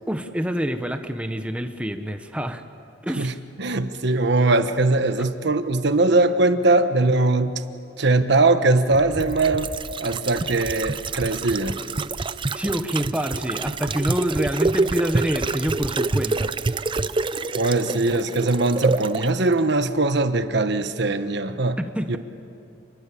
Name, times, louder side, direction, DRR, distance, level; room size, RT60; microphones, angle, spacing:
voice 1, 0.1-2.6 3.0-3.4 12.5-16.5 21.8-22.2, equal, 5° right, 7 dB, 1.1 m, -27 dB
voice 2, 3.6-7.5 8.0-9.7 10.0-11.8 17.5-21.8 22.1-22.2, right 2 dB, 65° right, 9 dB, 1.2 m, -21 dB
sound 1, 8.9-19.3 19.6-19.7, right 3 dB, 25° right, 0.5 m, -27 dB
29.0 x 22.5 x 8.5 m, 2.6 s
head